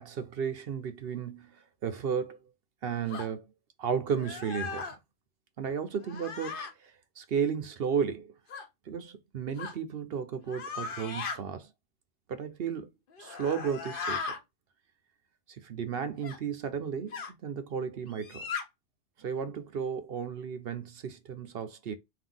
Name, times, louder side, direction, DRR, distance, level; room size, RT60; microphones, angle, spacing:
voice 1, 0.0-2.4 2.8-3.5 3.8-5.0 5.6-8.3 8.9-11.7 12.3-12.9 13.2-14.2 15.5-18.5 19.2-21.9, right 7 dB, 60° right, 0.8 m, -34 dB
sound 1, 3.1-3.3 4.2-5.0 6.0-6.7 8.5-8.7 9.6-9.8 10.5-11.4 13.1-14.4 16.2-16.4 17.1-17.3 18.1-18.6, left 5 dB, 50° left, 0.9 m, -37 dB
3.7 x 2.6 x 3.9 m
omnidirectional pair, 1.2 m